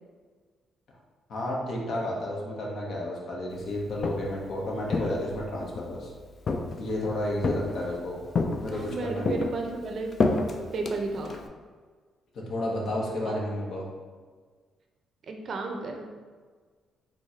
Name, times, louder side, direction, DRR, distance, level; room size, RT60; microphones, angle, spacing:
voice 1, 1.3-6.1 6.8-8.2 8.6-9.3 12.3-13.9, left 1 dB, 65° left, -2 dB, 0.8 m, -31 dB
Walk footsteps, 3.8-4.4 4.9-5.9 6.5-7.0 7.4-8.0 8.4-9.0 9.3-11.5, left 3 dB, 45° left, 0.3 m, -29 dB
voice 2, 8.7-10.1 10.7-11.4 13.3-13.4 15.3-16.1, right 3 dB, 55° right, 3 dB, 0.5 m, -33 dB
4.3 x 2.2 x 2.8 m, 1.5 s
cardioid pair, 90°, 0 cm